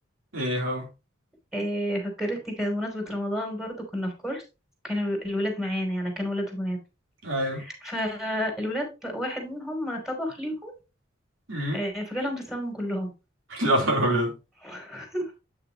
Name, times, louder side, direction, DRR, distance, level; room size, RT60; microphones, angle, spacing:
voice 1, 0.3-0.9 7.2-7.6 11.5-11.8 13.5-14.3, right 1 dB, 85° right, 0 dB, 3.4 m, -25 dB
voice 2, 1.5-4.4 4.8-6.8 7.5-10.7 11.7-13.1 14.6-15.2, equal, ahead, 2 dB, 3.1 m, -30 dB
8.5 x 6.7 x 2.9 m, 0.29 s
head